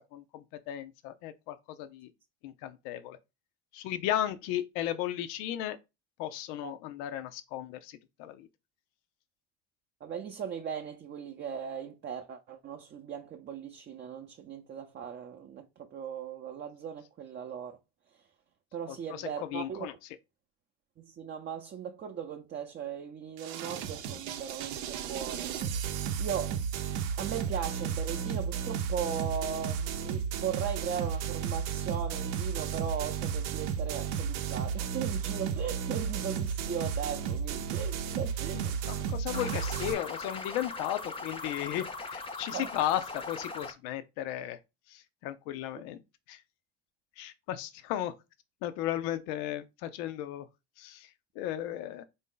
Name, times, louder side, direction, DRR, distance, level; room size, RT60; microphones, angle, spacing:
voice 1, 0.1-2.1 2.4-3.2 3.7-5.8 6.2-8.5 18.9-19.9 38.5-44.6 44.9-46.0 46.3-46.4 47.2-48.1 48.6-50.4 50.8-51.1 51.4-52.0, left 12 dB, 70° left, 0.5 m, -35 dB
voice 2, 10.0-17.8 18.7-19.9 21.0-25.7 26.2-26.6 27.2-38.8 42.5-42.7, right 8 dB, 35° right, 0.5 m, -38 dB
sound 1, 23.4-39.9, right 7 dB, 75° right, 0.7 m, -33 dB
sound 2, 39.3-43.7, left 3 dB, 15° left, 0.6 m, -40 dB
3.6 x 2.7 x 3.7 m
supercardioid pair, 80°, 33 cm